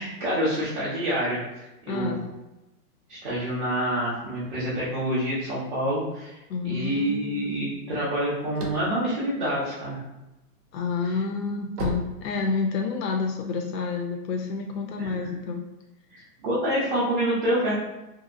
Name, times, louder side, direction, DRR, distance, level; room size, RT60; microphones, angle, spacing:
voice 1, 0.0-2.2 3.1-6.4 6.6-10.0 11.0-11.1 15.0-15.3 16.1-17.7, equal, 30° right, -8 dB, 0.7 m, -27 dB
voice 2, 1.9-2.2 6.5-7.8 10.7-15.6, left 4 dB, 90° left, 3 dB, 0.6 m, -29 dB
sound 1, 8.4-10.2 10.7-13.0, right 1 dB, 70° right, 0.9 m, -35 dB
2.8 x 2.6 x 2.4 m, 0.99 s
hypercardioid pair, 160°, 48 cm